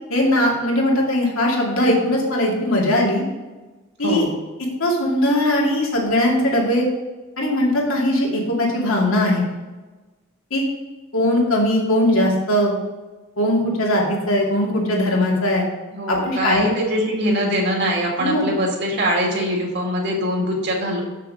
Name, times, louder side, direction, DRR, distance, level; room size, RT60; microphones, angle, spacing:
voice 1, 0.1-3.2 4.0-4.3 4.8-6.9 7.4-9.4 10.5-10.7 11.1-12.7 13.4-15.6 16.1-16.6 18.2-18.5, left 1 dB, 70° left, -2 dB, 2.4 m, -19 dB
voice 2, 4.0-4.3 15.9-21.0, equal, 50° right, -1 dB, 2.3 m, -22 dB
7.4 x 6.7 x 5.0 m, 1.2 s
head